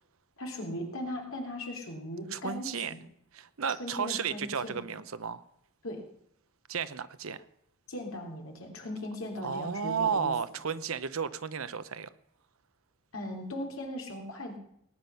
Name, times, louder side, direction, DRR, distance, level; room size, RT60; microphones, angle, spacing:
voice 1, 0.4-3.0 3.7-4.8 5.8-6.0 7.9-10.3 13.1-14.6, left 1 dB, 70° left, 1 dB, 3.3 m, -38 dB
voice 2, 2.3-2.9 3.3-5.4 6.7-7.4 9.4-12.1, right 6 dB, 75° right, 14 dB, 0.7 m, -33 dB
18.5 x 9.3 x 5.7 m, 0.75 s
head